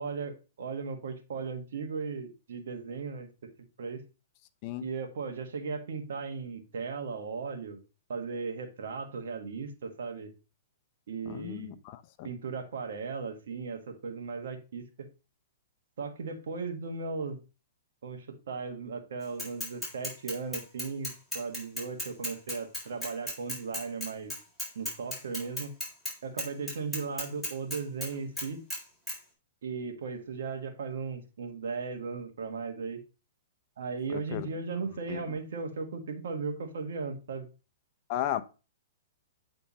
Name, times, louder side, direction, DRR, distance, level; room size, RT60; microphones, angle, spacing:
voice 1, 0.0-3.3 3.8-4.0 4.8-7.8 8.1-10.3 11.1-11.8 12.2-14.8 16.0-17.4 18.0-24.3 24.7-25.7 26.2-28.6 29.6-33.0 33.8-37.5, right 5 dB, 70° right, 1.4 m, -37 dB
voice 2, 11.3-12.3 34.1-34.5 35.1-35.4 38.1-38.4, left 12 dB, 45° left, 0.6 m, -35 dB
Bicycle / Mechanisms, 19.4-26.1 26.4-28.1 28.4-28.8 29.1-29.2, left 1 dB, ahead, 3.9 m, -35 dB
8.6 x 3.5 x 4.1 m
hypercardioid pair, 130°, 0 cm